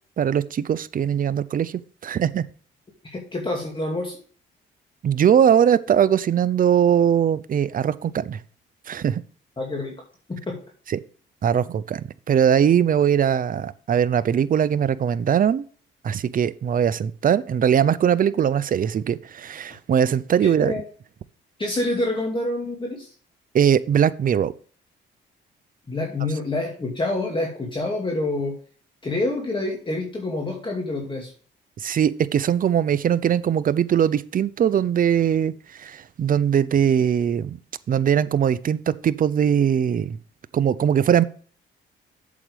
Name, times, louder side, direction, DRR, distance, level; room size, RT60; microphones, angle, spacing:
voice 1, 0.2-2.4 5.0-8.4 8.9-9.2 10.9-11.0 11.4-15.6 16.0-20.8 23.5-24.5 31.8-35.5 35.8-37.6 37.9-40.2 40.5-41.2, right 8 dB, 45° right, 16 dB, 0.6 m, -21 dB
voice 2, 3.1-4.2 9.6-9.9 10.3-10.6 20.4-20.8 21.6-23.1 25.9-28.5 29.0-31.3, left 2 dB, 25° left, 0 dB, 2.3 m, -27 dB
8.5 x 7.4 x 3.4 m, 0.43 s
cardioid pair, 90°, 20 cm